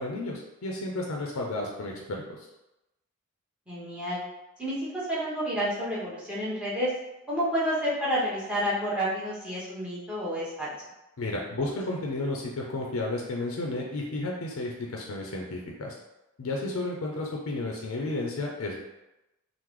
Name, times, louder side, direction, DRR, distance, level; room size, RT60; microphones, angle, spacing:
voice 1, 0.0-2.2 11.2-15.9 16.4-18.8, left 2 dB, 75° left, -1 dB, 0.5 m, -32 dB
voice 2, 3.7-4.2 4.6-6.9 7.3-10.7, equal, 5° right, -8 dB, 0.8 m, -29 dB
3.6 x 2.0 x 3.0 m, 0.94 s
head